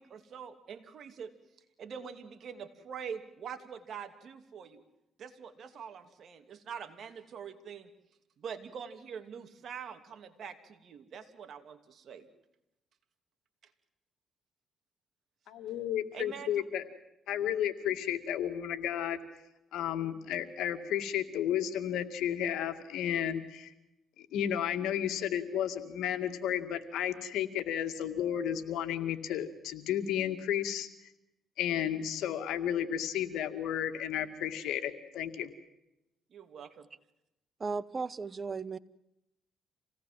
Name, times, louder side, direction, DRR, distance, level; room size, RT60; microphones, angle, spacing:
voice 1, 0.0-1.3 1.8-4.8 5.2-7.9 8.4-12.3 16.1-16.7 36.3-36.9, right 7 dB, 60° right, 8 dB, 2.7 m, -44 dB
voice 2, 15.5-16.8 17.3-19.2 19.7-23.7 24.2-30.9 31.6-35.5, left 10 dB, 85° left, 8 dB, 2.2 m, -33 dB
voice 3, 37.6-38.8, right 4 dB, 35° right, 19 dB, 0.9 m, -35 dB
26.5 x 18.0 x 7.6 m, 0.88 s
cardioid pair, 90°, 0 cm